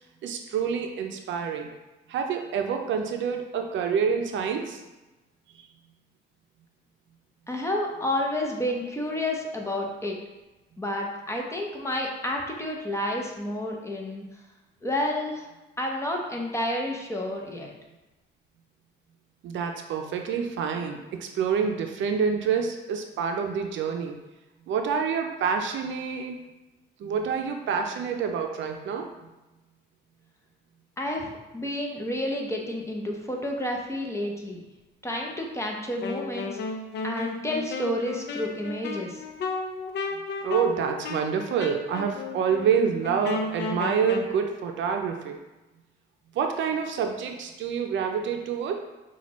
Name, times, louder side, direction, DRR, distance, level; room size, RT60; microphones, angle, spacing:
voice 1, 0.2-1.7 2.1-4.8 19.4-24.2 24.7-26.4 27.0-29.3 40.1-45.4 46.3-48.7, right 6 dB, 70° right, 4 dB, 0.5 m, -27 dB
voice 2, 7.5-10.2 10.8-14.2 14.8-15.5 15.8-17.7 31.0-34.6 35.0-36.6 37.0-39.2, left 1 dB, 15° left, 0 dB, 0.8 m, -30 dB
Wind instrument woodwind instrument, 36.0-44.3, left 3 dB, 60° left, 0.6 m, -33 dB
5.7 x 2.3 x 3.0 m, 1.1 s
cardioid pair, 90°, 20 cm